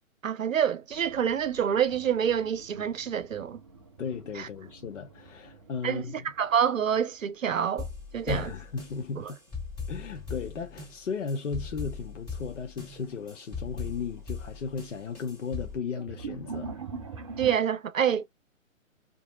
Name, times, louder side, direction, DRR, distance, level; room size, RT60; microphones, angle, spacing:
voice 1, 0.2-3.6 4.4-4.5 5.8-6.1 6.4-7.9 8.1-8.5 9.2-9.3 17.4-18.3, right 8 dB, 75° right, 0.6 m, -27 dB
sound 1, 0.9-7.7 8.0-8.9 10.6-10.9 11.5-11.6 12.5-12.6 13.0-13.5 13.9-17.6, right 5 dB, 25° right, 0.5 m, -45 dB
voice 2, 4.0-6.2 8.3-9.4 9.9-16.7, left 5 dB, 65° left, 0.6 m, -35 dB
sound 2, 7.8-15.8, left 5 dB, 10° left, 2.0 m, -39 dB
2.8 x 2.5 x 2.5 m
figure-of-eight pair, 130°, 40 cm